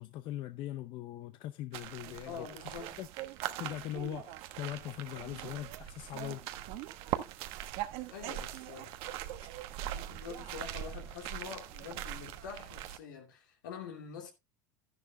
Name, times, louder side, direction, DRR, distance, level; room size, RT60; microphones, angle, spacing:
voice 1, 0.0-2.5 3.0-3.1 3.6-6.4 9.4-9.5, left 13 dB, 55° left, 0.7 m, -41 dB
sound 1, 1.7-13.0, right 13 dB, 60° right, 1.1 m, -41 dB
voice 2, 2.3-3.0 8.1-9.0 9.9-14.3, left 7 dB, 85° left, 2.5 m, -46 dB
12.5 x 11.0 x 2.3 m
hypercardioid pair, 95°, 10 cm